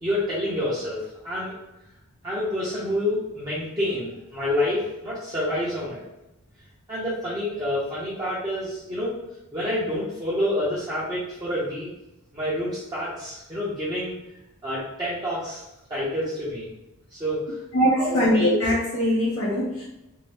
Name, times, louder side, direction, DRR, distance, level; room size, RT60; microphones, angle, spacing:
voice 1, 0.0-1.5 2.2-6.0 6.9-9.1 9.5-11.9 12.3-14.1 14.6-15.6 15.9-16.7 17.1-17.6 18.0-18.3, left 1 dB, 15° right, -9 dB, 0.7 m, -28 dB
voice 2, 17.7-19.8, equal, 55° left, -6 dB, 0.6 m, -22 dB
2.7 x 2.1 x 3.3 m, 0.93 s
head